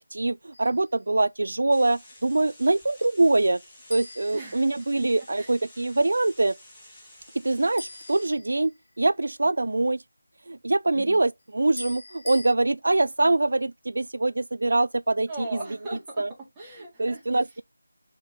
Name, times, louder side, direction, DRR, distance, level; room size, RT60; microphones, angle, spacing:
voice 1, 0.1-3.6 3.9-6.6 7.4-10.0 10.5-15.3 16.2-16.3 17.0-17.6, right 2 dB, 65° right, 0.3 m, -24 dB
sound 1, 0.5-0.9 3.9-5.3 7.8-9.1 11.8-12.5, left 2 dB, 60° left, 0.4 m, -42 dB
sound 2, 1.7-8.3, left 1 dB, 10° left, 2.2 m, -51 dB
voice 2, 4.3-4.7 5.4-5.6 10.9-11.2 15.3-16.2 16.6-17.5, right 2 dB, 10° right, 2.1 m, -39 dB
6.9 x 3.9 x 3.5 m
figure-of-eight pair, 165°, 0 cm